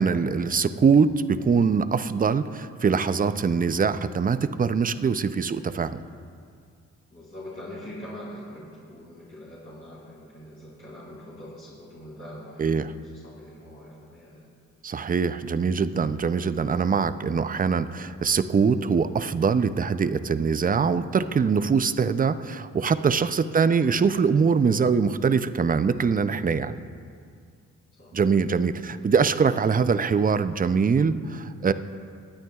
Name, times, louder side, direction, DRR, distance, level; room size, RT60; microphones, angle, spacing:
voice 1, 0.0-6.0 12.6-12.9 14.8-26.8 28.1-31.7, right 5 dB, 25° right, 13 dB, 0.5 m, -23 dB
voice 2, 7.1-14.4 23.6-24.0 27.9-28.2 28.9-29.3, left 1 dB, 45° left, -8 dB, 3.1 m, -43 dB
22.5 x 9.0 x 2.4 m, 2.2 s
cardioid pair, 60°, 33 cm